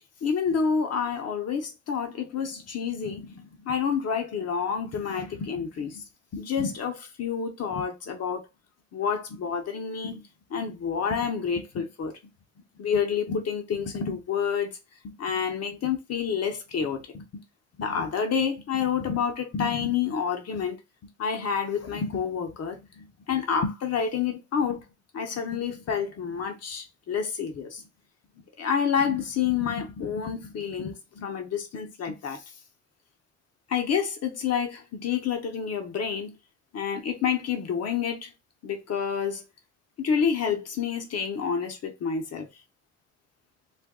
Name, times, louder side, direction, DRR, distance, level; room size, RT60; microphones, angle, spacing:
voice 1, 0.2-6.0 6.3-8.5 8.9-10.2 10.5-12.2 12.8-14.8 15.0-17.4 17.8-20.8 21.2-24.8 25.1-27.8 28.6-32.4 33.7-36.4 36.7-38.3 38.6-39.4 40.0-42.5, left 6 dB, 55° left, 0.9 m, -29 dB
2.5 x 2.2 x 3.6 m
cardioid pair, 90°, 30 cm